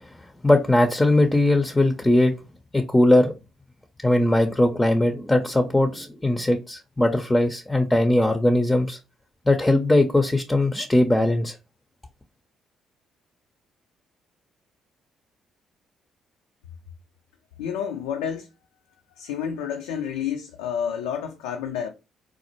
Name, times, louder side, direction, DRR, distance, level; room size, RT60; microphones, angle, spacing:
voice 1, 0.4-2.3 2.7-3.3 4.0-9.0 9.5-11.6, left 1 dB, 15° left, 0.5 m, -20 dB
voice 2, 17.6-18.5 19.2-21.9, left 8 dB, 75° left, 0.3 m, -29 dB
4.1 x 2.0 x 2.9 m
hypercardioid pair, 45°, 0 cm